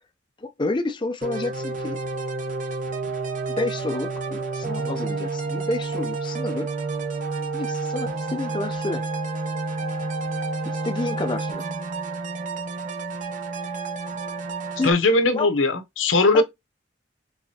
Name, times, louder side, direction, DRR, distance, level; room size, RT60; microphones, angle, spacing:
voice 1, 0.4-2.0 3.5-6.7 7.5-9.0 10.8-11.6 14.8-14.9 15.3-15.5 16.3-16.4, left 2 dB, 25° left, 0.4 m, -29 dB
sound 1, 1.2-14.9, right 3 dB, 40° right, 0.8 m, -30 dB
voice 2, 14.8-16.4, left 3 dB, 85° left, 0.8 m, -19 dB
4.7 x 3.3 x 2.8 m
head